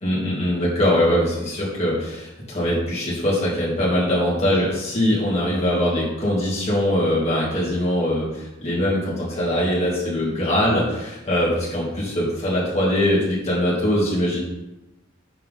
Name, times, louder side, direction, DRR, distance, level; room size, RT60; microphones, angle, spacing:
voice 1, 0.0-14.4, left 1 dB, 30° left, -7 dB, 2.7 m, -22 dB
6.0 x 4.5 x 5.5 m, 0.98 s
head